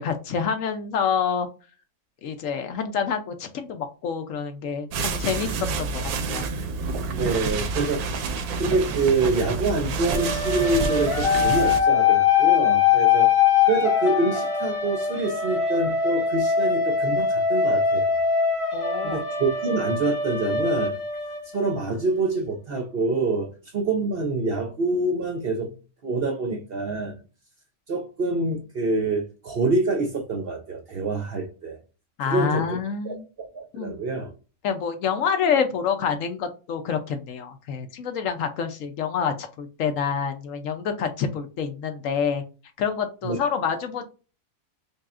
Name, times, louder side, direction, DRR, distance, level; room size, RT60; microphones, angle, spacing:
voice 1, 0.0-1.5 2.2-6.5 18.7-19.2 32.2-33.2 33.7-34.0 34.6-42.4 42.8-44.0, left 6 dB, 65° left, 0.9 m, -27 dB
sound 1, 4.9-11.8, right 4 dB, 90° right, 1.1 m, -28 dB
voice 2, 7.1-8.3 8.6-13.3 13.6-18.2 19.0-21.0 21.5-25.7 26.0-27.1 27.9-31.8 32.2-32.8 33.0-34.3 43.2-43.4, right 3 dB, 55° right, 0.7 m, -26 dB
sound 2, 10.1-21.9, left 6 dB, 40° left, 2.3 m, -22 dB
5.3 x 2.3 x 2.4 m
omnidirectional pair, 1.6 m